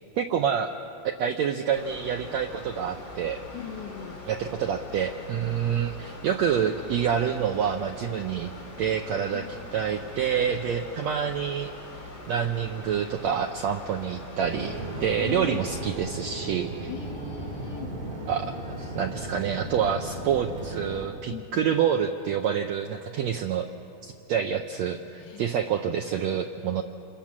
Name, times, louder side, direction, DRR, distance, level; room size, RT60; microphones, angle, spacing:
voice 1, 0.2-0.7 1.0-3.4 4.3-8.5 8.8-9.4 9.7-11.7 12.3-16.9 18.3-18.5 18.8-23.7 24.0-26.8, right 8 dB, 85° right, 5 dB, 1.5 m, -27 dB
Mechanical fan, 1.7-15.9, left 2 dB, 30° left, 3.6 m, -43 dB
voice 2, 3.5-4.2 9.3-9.6 15.0-15.6 16.9-18.0 21.3-21.7 25.2-25.4, left 8 dB, 65° left, 3 dB, 2.8 m, -39 dB
sound 1, 14.4-21.1, right 1 dB, 25° right, 3.2 m, -36 dB
27.0 x 22.0 x 7.4 m, 2.9 s
omnidirectional pair, 4.1 m